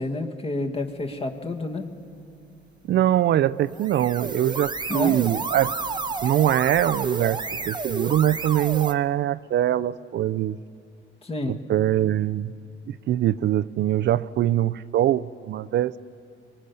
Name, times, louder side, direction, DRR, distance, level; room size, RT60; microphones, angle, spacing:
voice 1, 0.0-1.8 4.9-5.2 11.2-11.5, left 2 dB, 30° left, 3 dB, 1.7 m, -29 dB
voice 2, 2.9-5.7 6.2-10.6 11.5-12.5 12.9-15.9, right 12 dB, 60° right, 15 dB, 0.4 m, -23 dB
sound 1, 3.7-8.9, right 4 dB, 20° right, 0.9 m, -30 dB
23.5 x 19.5 x 6.8 m, 2.6 s
cardioid pair, 90°, 20 cm